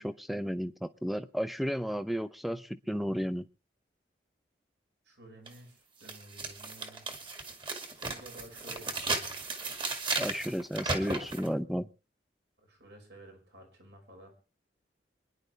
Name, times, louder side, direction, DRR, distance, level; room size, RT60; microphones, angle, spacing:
voice 1, 0.0-3.4 10.2-11.9, equal, ahead, 13 dB, 0.7 m, -33 dB
voice 2, 5.0-7.0 8.0-9.3 12.6-14.3, right 1 dB, 75° right, 2 dB, 5.8 m, -52 dB
sound 1, 5.5-5.6 6.0-11.5, right 3 dB, 30° right, 2.1 m, -35 dB
26.5 x 10.5 x 3.4 m, 0.33 s
head